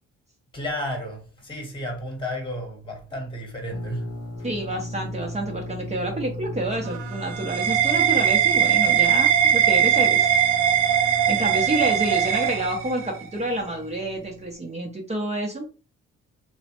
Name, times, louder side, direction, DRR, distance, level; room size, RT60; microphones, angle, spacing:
voice 1, 0.5-4.1, left 1 dB, 15° left, 1.1 m, -32 dB
sound 1, 3.7-14.6, left 1 dB, 55° left, 0.8 m, -37 dB
voice 2, 4.4-10.5 11.3-15.7, right 1 dB, 20° right, 0.6 m, -28 dB
sound 2, 6.8-13.2, right 9 dB, 85° right, 0.6 m, -20 dB
3.1 x 2.1 x 2.9 m
cardioid pair, 90°, 30 cm